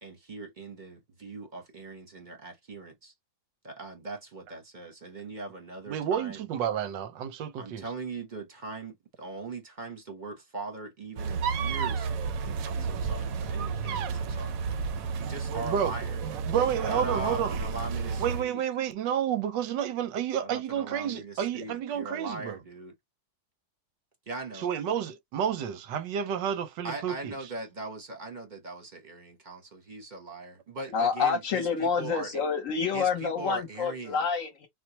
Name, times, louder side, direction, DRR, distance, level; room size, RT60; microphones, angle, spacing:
voice 1, 0.0-3.1 3.6-6.5 7.6-12.1 12.4-14.8 15.2-16.2 16.6-18.6 20.4-22.9 24.3-24.7 26.8-32.4 32.9-34.3, right 3 dB, 40° right, 0.7 m, -40 dB
voice 2, 5.9-7.9 15.2-15.9 16.2-17.5 18.2-22.6 24.6-27.3, right 9 dB, 90° right, 1.3 m, -30 dB
sound 1, 11.2-18.4, right 5 dB, 70° right, 0.8 m, -32 dB
voice 3, 30.9-34.7, left 6 dB, 55° left, 1.0 m, -28 dB
4.4 x 2.1 x 2.8 m
omnidirectional pair, 1.9 m